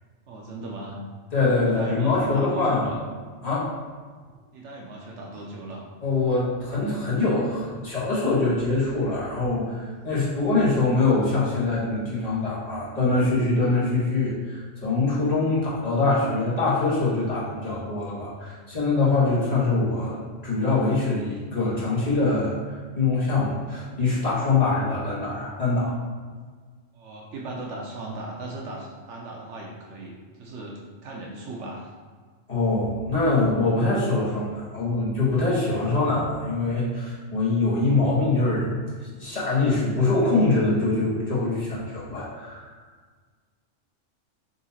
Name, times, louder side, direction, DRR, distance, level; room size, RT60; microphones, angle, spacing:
voice 1, 0.3-1.0 1.6-3.0 4.5-5.9 26.9-31.9, right 2 dB, 70° right, -2 dB, 0.9 m, -38 dB
voice 2, 1.3-2.9 3.4-3.7 6.0-25.9 32.5-38.7 39.2-42.7, left 3 dB, 35° left, -7 dB, 1.3 m, -24 dB
4.0 x 2.8 x 4.0 m, 1.6 s
omnidirectional pair, 1.3 m